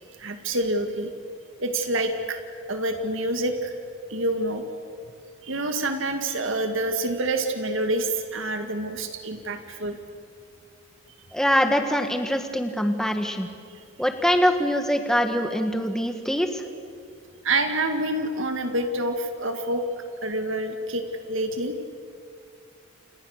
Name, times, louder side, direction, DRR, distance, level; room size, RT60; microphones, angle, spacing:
voice 1, 0.2-1.1 1.6-2.4 2.7-3.8 4.1-4.6 5.4-10.0 13.7-13.8 17.4-19.8 20.2-21.8, right 1 dB, 70° right, 6 dB, 2.1 m, -27 dB
voice 2, 11.3-13.5 14.0-16.6, equal, 5° left, 5 dB, 1.7 m, -23 dB
29.5 x 29.0 x 6.6 m, 2.2 s
head